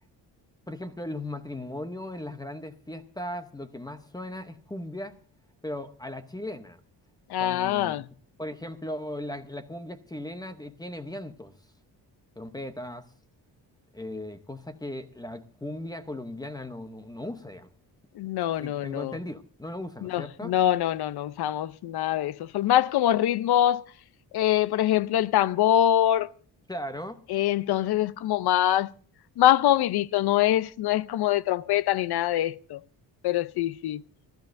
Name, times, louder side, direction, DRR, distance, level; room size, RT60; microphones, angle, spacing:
voice 1, 0.7-5.2 5.6-6.8 7.4-8.0 8.4-11.6 12.4-13.1 13.9-17.7 18.6-20.5 26.7-27.2, left 1 dB, 10° left, 0.7 m, -37 dB
voice 2, 7.3-8.0 18.2-19.2 20.0-23.8 24.3-26.3 27.3-28.9 29.4-32.8 33.2-34.0, left 12 dB, 65° left, 0.6 m, -24 dB
28.0 x 13.0 x 2.6 m
wide cardioid pair, 160°, 41 cm